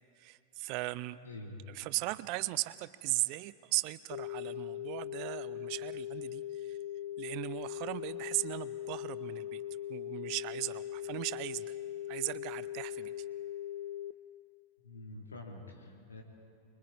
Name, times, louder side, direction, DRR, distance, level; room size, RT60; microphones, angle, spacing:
voice 1, 0.2-1.2 1.7-6.8 7.2-9.6 9.9-11.7 12.1-13.1, right 21 dB, 45° right, 17 dB, 0.5 m, -37 dB
voice 2, 1.2-1.6 14.8-16.2, left 2 dB, 75° left, 0 dB, 2.7 m, -47 dB
sound 1, 4.1-14.1, left 12 dB, 55° left, 0.5 m, -40 dB
25.5 x 22.5 x 4.8 m, 2.6 s
figure-of-eight pair, 90°, 0 cm